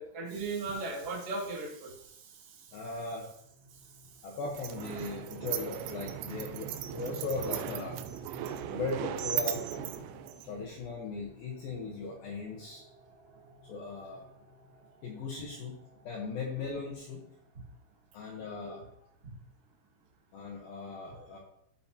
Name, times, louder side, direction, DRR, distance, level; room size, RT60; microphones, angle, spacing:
voice 1, 0.0-2.9 18.3-18.8, right 3 dB, 40° right, -3 dB, 1.3 m, -38 dB
voice 2, 2.7-3.3 4.2-8.0 8.7-9.6 10.4-12.9 13.6-14.3 15.0-17.2 18.1-18.9 20.3-21.4, left 3 dB, 75° left, 0 dB, 2.2 m, -38 dB
sound 1, 3.4-18.2, left 1 dB, 65° right, 3.4 m, -56 dB
sound 2, 4.5-10.8, right 11 dB, 85° right, 3.1 m, -37 dB
13.5 x 5.9 x 2.8 m, 0.77 s
omnidirectional pair, 5.5 m